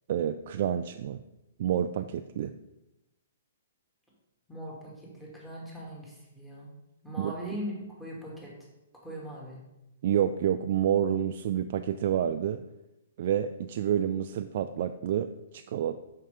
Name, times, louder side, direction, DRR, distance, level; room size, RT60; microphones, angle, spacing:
voice 1, 0.1-1.2 1.6-2.5 7.2-7.3 10.0-12.6 13.2-16.0, right 10 dB, 55° right, 8 dB, 0.3 m, -28 dB
voice 2, 4.5-6.7 7.0-7.7 8.0-8.5 9.0-9.6, equal, 5° left, -5 dB, 2.4 m, -40 dB
5.7 x 5.6 x 5.0 m, 0.94 s
hypercardioid pair, 135°, 0 cm